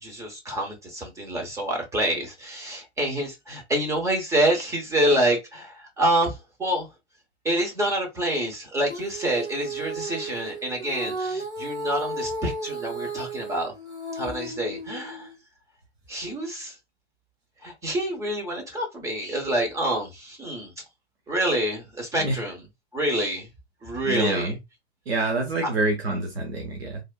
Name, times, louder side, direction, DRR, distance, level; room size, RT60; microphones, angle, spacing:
voice 1, 0.0-6.9 7.4-13.7 14.1-15.3 16.1-16.7 17.6-20.7 21.3-22.6 22.9-23.5 23.8-24.6 25.6-25.7, right 1 dB, 10° right, 0.7 m, -27 dB
Female singing, 8.8-15.4, right 2 dB, 85° right, 1.6 m, -34 dB
voice 2, 24.0-24.6 25.1-27.0, right 2 dB, 70° right, 0.9 m, -26 dB
3.4 x 2.4 x 2.2 m
figure-of-eight pair, 105°, 33 cm